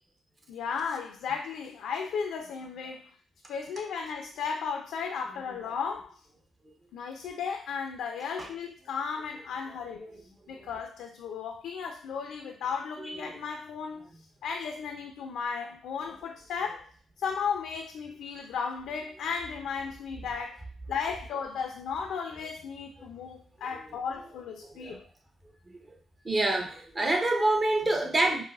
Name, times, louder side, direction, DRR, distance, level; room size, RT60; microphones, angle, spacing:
voice 1, 0.5-3.1 3.5-6.1 6.9-10.0 10.5-14.1 14.4-16.9 17.2-20.6 20.9-25.0, left 6 dB, 85° left, 3 dB, 0.4 m, -35 dB
voice 2, 13.0-13.3 24.6-25.0 26.2-28.4, right 2 dB, 35° right, 1 dB, 1.0 m, -27 dB
4.7 x 2.1 x 2.4 m, 0.44 s
supercardioid pair, 65°, 0 cm